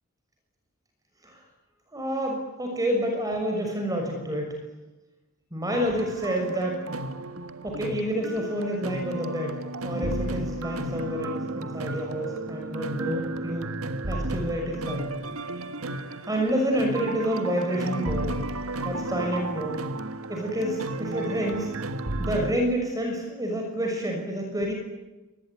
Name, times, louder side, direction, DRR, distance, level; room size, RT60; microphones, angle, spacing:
voice 1, 1.9-4.6 5.5-6.8 7.6-13.7 14.1-15.1 16.2-18.4 18.8-19.8 20.3-21.8 22.2-24.7, equal, 15° right, 2 dB, 6.4 m, -28 dB
sound 1, 5.7-22.5, right 2 dB, 75° right, 1.6 m, -33 dB
26.0 x 20.5 x 9.8 m, 1.1 s
head